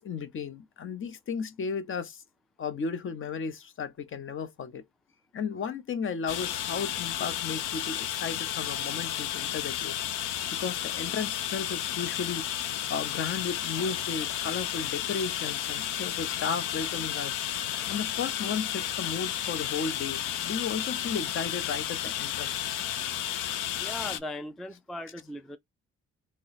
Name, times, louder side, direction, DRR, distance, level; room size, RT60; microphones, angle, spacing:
voice 1, 0.0-2.2 2.6-4.8 5.3-10.0 10.5-12.5 12.9-17.4 17.9-22.5 22.9-23.0, left 6 dB, 45° left, 0.6 m, -34 dB
sound 1, 6.3-24.2, left 11 dB, 85° left, 0.5 m, -32 dB
voice 2, 23.8-25.6, left 1 dB, ahead, 0.3 m, -38 dB
2.9 x 2.0 x 3.9 m
cardioid pair, 90°, 30 cm